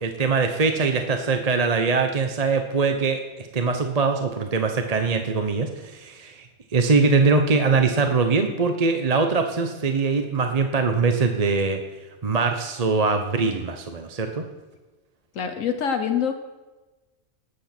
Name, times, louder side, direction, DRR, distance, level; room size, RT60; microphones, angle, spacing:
voice 1, 0.0-6.5 6.7-11.8 12.2-14.4, right 4 dB, 35° right, 6 dB, 0.9 m, -22 dB
voice 2, 15.3-16.3, left 7 dB, 70° left, 7 dB, 1.3 m, -25 dB
19.0 x 8.3 x 5.9 m, 1.2 s
omnidirectional pair, 1.4 m